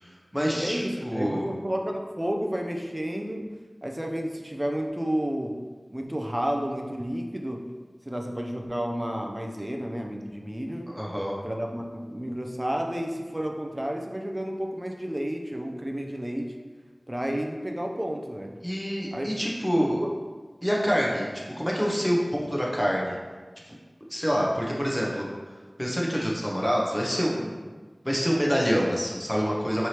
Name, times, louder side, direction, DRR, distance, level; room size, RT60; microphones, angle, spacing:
voice 1, 0.0-1.5 10.9-11.4 18.6-20.0 20.6-23.1 23.7-23.8 24.1-25.3 25.8-27.6 28.0-29.9, equal, 10° left, -3 dB, 0.9 m, -26 dB
voice 2, 0.5-3.5 3.8-5.6 5.9-7.6 8.0-10.9 11.4-16.6 17.1-18.6 19.1-19.4 19.7-20.1, equal, 20° right, 2 dB, 0.5 m, -31 dB
4.6 x 3.2 x 2.9 m, 1.4 s
wide cardioid pair, 45°, 0 cm